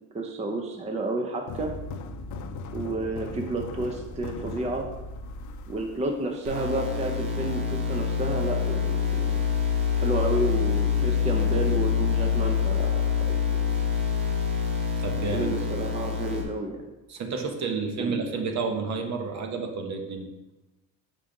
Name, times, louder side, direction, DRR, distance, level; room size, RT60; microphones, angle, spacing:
voice 1, 0.1-1.7 2.7-4.9 5.7-9.4 10.0-13.7 15.3-16.8 18.0-18.2, right 2 dB, 20° right, 3 dB, 0.6 m, -31 dB
sound 1, 1.5-6.7, left 3 dB, 55° left, 0.6 m, -38 dB
sound 2, 6.4-16.4, left 7 dB, 65° right, 1.6 m, -26 dB
voice 2, 15.0-15.5 17.1-20.3, right 4 dB, 50° right, 4 dB, 1.0 m, -30 dB
5.4 x 5.1 x 3.8 m, 1.0 s
cardioid pair, 120°, 36 cm